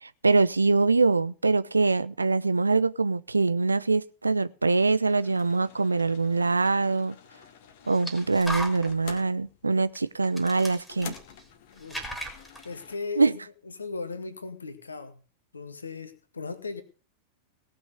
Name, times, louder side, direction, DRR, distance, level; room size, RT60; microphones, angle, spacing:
voice 1, 0.0-7.2 7.9-11.2 13.2-13.3, right 3 dB, 80° right, 0.5 m, -24 dB
sound 1, 5.1-13.0, left 8 dB, 50° left, 1.8 m, -49 dB
sound 2, 6.7-6.8 7.9-9.2 9.9-10.0 10.2-11.5 11.8-12.7, equal, 5° left, 3.6 m, -37 dB
voice 2, 11.7-12.1 12.6-15.2 15.5-16.8, left 4 dB, 75° left, 1.8 m, -37 dB
18.0 x 6.2 x 6.8 m
figure-of-eight pair, 90°, 0 cm